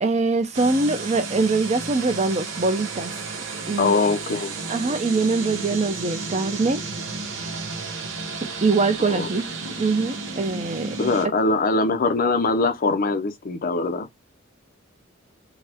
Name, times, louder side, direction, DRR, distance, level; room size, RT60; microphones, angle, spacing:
voice 1, 0.0-3.1 3.7-4.0 4.7-6.8 8.6-9.5 9.8-11.0, right 3 dB, 35° right, 0.6 m, -23 dB
sound 1, 0.5-11.3, right 4 dB, 80° right, 1.0 m, -32 dB
voice 2, 3.8-4.6 9.1-9.3 11.0-14.1, left 3 dB, 45° left, 0.5 m, -22 dB
4.0 x 2.2 x 2.9 m
head